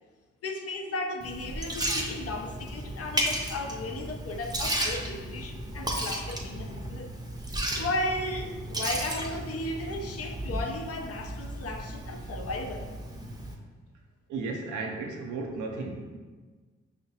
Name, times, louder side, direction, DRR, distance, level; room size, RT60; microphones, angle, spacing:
voice 1, 0.4-7.2 7.8-12.9, left 2 dB, 50° left, 3 dB, 0.6 m, -35 dB
Liquid, 1.2-13.5, right 1 dB, 15° right, 0.6 m, -34 dB
voice 2, 14.3-16.2, right 3 dB, 80° right, 2 dB, 0.6 m, -34 dB
5.4 x 2.1 x 2.7 m, 1.4 s
supercardioid pair, 45°, 30 cm